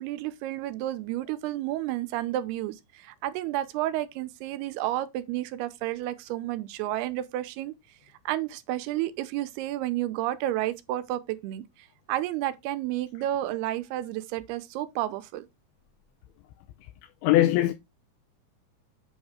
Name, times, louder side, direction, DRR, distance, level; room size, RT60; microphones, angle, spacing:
voice 1, 0.0-7.7 8.3-11.6 12.1-15.5, right 14 dB, 85° right, 2.7 m, -31 dB
voice 2, 17.2-17.7, left 14 dB, 80° left, 2.5 m, -20 dB
8.3 x 3.6 x 4.9 m
omnidirectional pair, 4.5 m